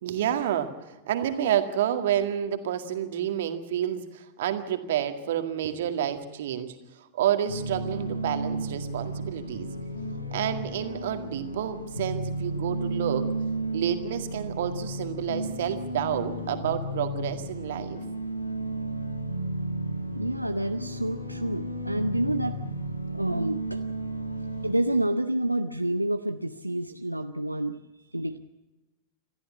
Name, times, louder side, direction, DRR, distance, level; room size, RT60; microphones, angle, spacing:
voice 1, 0.0-9.7 10.3-13.3 13.7-18.0, right 10 dB, 55° right, 7 dB, 2.0 m, -29 dB
sound 1, 7.5-24.7, right 1 dB, 85° left, 1.9 m, -33 dB
voice 2, 20.1-22.6 23.1-23.8 24.3-27.8 28.1-28.4, right 1 dB, 90° right, 7 dB, 0.7 m, -28 dB
27.0 x 14.0 x 8.4 m, 1.1 s
figure-of-eight pair, 90°, 0 cm